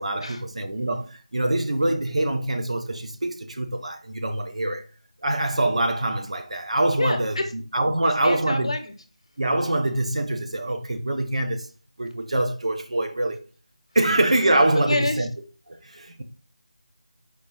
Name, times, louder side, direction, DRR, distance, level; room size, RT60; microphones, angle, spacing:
voice 1, 0.0-4.8 5.2-7.4 7.7-8.7 9.4-11.7 12.0-13.4 13.9-15.3 15.7-16.2, right 1 dB, 65° right, 0.7 m, -24 dB
voice 2, 7.0-7.4 8.2-8.9 14.9-15.2, left 2 dB, 55° left, 0.8 m, -27 dB
4.6 x 2.6 x 3.0 m
figure-of-eight pair, 180°, 4 cm